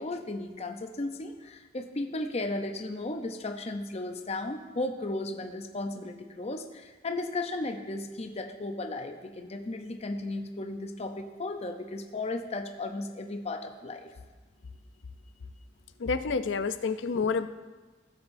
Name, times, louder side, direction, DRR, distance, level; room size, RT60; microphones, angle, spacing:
voice 1, 0.0-14.1, left 2 dB, 35° left, 5 dB, 0.6 m, -35 dB
voice 2, 16.0-17.5, left 5 dB, 90° left, 11 dB, 0.5 m, -28 dB
16.5 x 7.5 x 2.6 m, 1.4 s
head